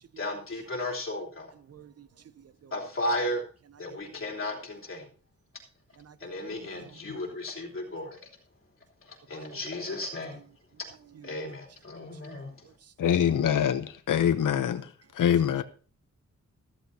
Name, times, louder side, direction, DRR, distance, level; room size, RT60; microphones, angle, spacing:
voice 1, 0.2-1.5 2.7-3.4 3.8-5.1 6.2-8.2 9.1-10.4 11.2-12.5, left 1 dB, 40° left, 3.3 m, -34 dB
voice 2, 1.7-2.1 2.4-2.7 6.0-7.0 9.3-9.6 9.9-10.0 11.2-11.3 12.2-12.4, right 8 dB, 55° right, 0.5 m, -51 dB
voice 3, 13.0-14.8 15.2-15.6, left 9 dB, 90° left, 0.8 m, -24 dB
14.0 x 14.0 x 2.8 m
wide cardioid pair, 165°, 31 cm